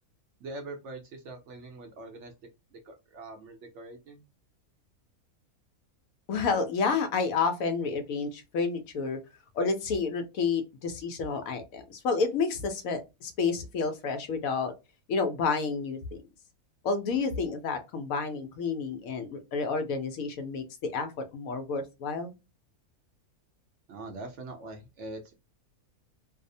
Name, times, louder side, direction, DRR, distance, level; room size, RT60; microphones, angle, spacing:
voice 1, 0.4-2.3 2.7-4.2 23.9-25.3, right 2 dB, 65° right, 3 dB, 0.8 m, -43 dB
voice 2, 6.3-9.2 9.5-14.7 15.1-16.2 16.8-22.3, left 4 dB, 75° left, 7 dB, 1.0 m, -30 dB
2.7 x 2.0 x 2.6 m, 0.25 s
omnidirectional pair, 1.5 m